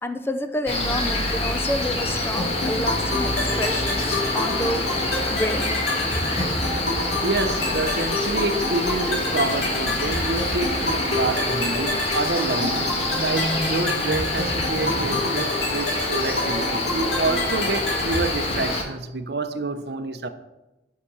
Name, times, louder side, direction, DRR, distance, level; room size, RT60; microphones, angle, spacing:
voice 1, 0.0-4.9 5.3-5.7, left 1 dB, 15° left, 0.6 m, -29 dB
Cricket, 0.7-18.8, left 1 dB, 35° left, 1.6 m, -26 dB
sound 1, 2.4-18.4, left 2 dB, 60° left, 3.5 m, -29 dB
voice 2, 7.2-20.3, right 3 dB, 60° right, 0.8 m, -28 dB
10.0 x 5.8 x 6.3 m
head